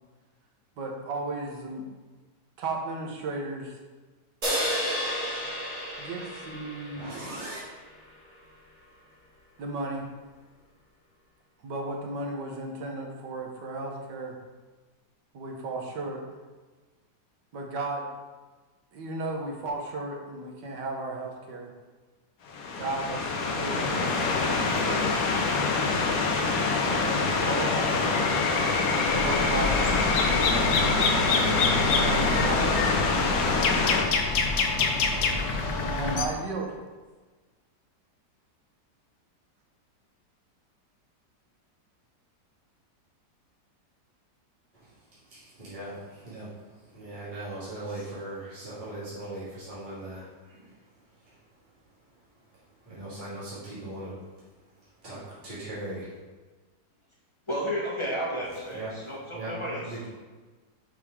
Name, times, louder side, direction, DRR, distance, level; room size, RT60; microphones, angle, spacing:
voice 1, 0.8-1.9 2.6-3.8 6.0-7.1 9.6-10.1 11.6-14.4 15.3-16.2 17.5-18.1 18.9-21.7 22.8-25.4 26.6-27.8 29.0-29.9 31.7-33.5 35.8-36.8, right 2 dB, 75° right, 1 dB, 1.8 m, -35 dB
sound 1, 4.4-7.9, equal, 60° right, 3.0 m, -32 dB
voice 2, 6.9-7.6 45.3-45.9 46.2-46.5 47.0-50.7 52.9-54.1 55.0-56.1 58.7-60.0, right 1 dB, 25° right, -11 dB, 2.5 m, -39 dB
sound 2, 22.5-34.0, left 4 dB, 60° left, 1.3 m, -25 dB
sound 3, 29.0-36.3, left 4 dB, 75° left, 1.4 m, -26 dB
voice 3, 57.5-59.8, equal, 15° left, -6 dB, 1.7 m, -32 dB
5.9 x 5.3 x 4.9 m, 1.3 s
omnidirectional pair, 1.9 m